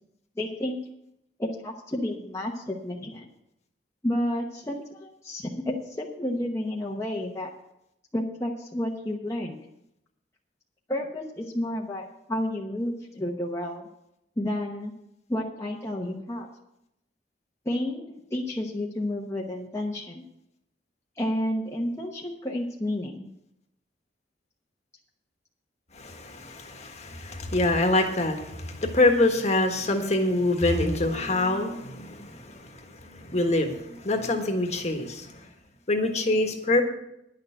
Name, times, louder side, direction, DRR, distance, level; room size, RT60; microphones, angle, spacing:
voice 1, 0.4-0.8 1.4-3.2 4.0-7.5 8.1-9.6 10.9-13.9 14.4-14.9 15.3-16.5 17.6-20.2 21.2-23.3, left 1 dB, 15° left, -3 dB, 1.0 m, -31 dB
voice 2, 25.9-35.5 35.9-36.8, left 2 dB, 40° left, 4 dB, 1.4 m, -25 dB
10.5 x 6.5 x 7.8 m, 0.83 s
head